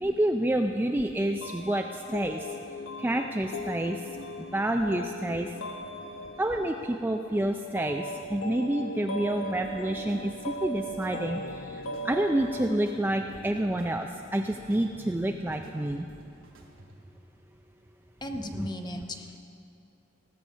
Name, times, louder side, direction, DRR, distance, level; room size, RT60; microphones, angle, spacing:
voice 1, 0.0-2.5 3.0-4.0 4.5-5.5 6.4-8.0 8.3-16.1 18.5-18.7, right 1 dB, 10° right, 4 dB, 0.3 m, -28 dB
sound 1, 1.4-14.0, equal, 80° left, 0.8 m, -39 dB
sound 2, 9.6-17.2, equal, 85° right, 2.1 m, -53 dB
voice 2, 18.2-19.4, left 1 dB, 20° left, 5 dB, 0.8 m, -36 dB
17.5 x 7.0 x 6.2 m, 2.7 s
head